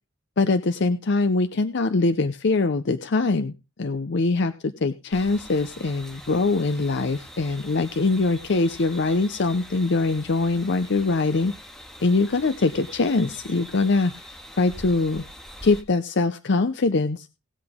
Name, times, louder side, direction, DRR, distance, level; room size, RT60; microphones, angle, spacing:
voice 1, 0.4-11.5 12.0-14.1 14.5-15.2 15.6-17.3, left 3 dB, 60° left, 10 dB, 0.6 m, -23 dB
sound 1, 5.1-15.8, equal, ahead, 1.8 m, -43 dB
18.0 x 7.9 x 3.6 m, 0.30 s
head